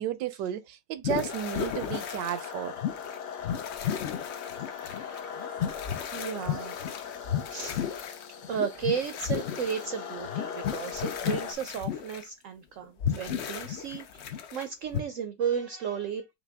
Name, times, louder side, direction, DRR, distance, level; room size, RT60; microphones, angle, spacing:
voice 1, 0.0-2.7, right 10 dB, 90° right, 1.3 m, -33 dB
sound 1, 1.0-2.4 2.8-3.2 3.4-9.8 10.2-12.2 12.8-14.6 14.9-15.0, left 9 dB, 85° left, 0.5 m, -34 dB
sound 2, 1.3-11.5, left 7 dB, 70° left, 1.4 m, -40 dB
voice 2, 3.7-6.8 7.5-8.1 8.5-16.3, right 7 dB, 65° right, 0.8 m, -35 dB
5.7 x 2.2 x 3.4 m
omnidirectional pair, 1.9 m